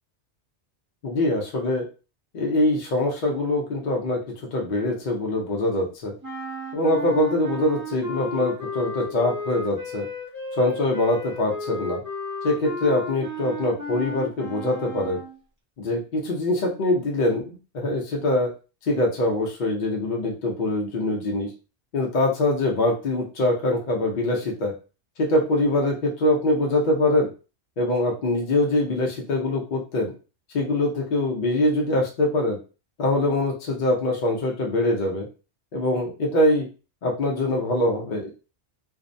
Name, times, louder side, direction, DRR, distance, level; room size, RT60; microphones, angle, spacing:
voice 1, 1.0-1.8 2.3-4.2 4.5-6.1 6.7-10.1 10.6-12.0 12.4-15.2 15.8-18.5 18.8-21.5 21.9-24.7 25.2-27.3 27.8-30.1 30.5-32.6 33.0-35.3 35.7-36.7 37.0-38.3, left 1 dB, 55° left, -1 dB, 0.6 m, -23 dB
sound 1, 6.2-15.4, left 2 dB, 20° right, 0.6 m, -34 dB
2.5 x 2.0 x 2.5 m, 0.34 s
omnidirectional pair, 1.2 m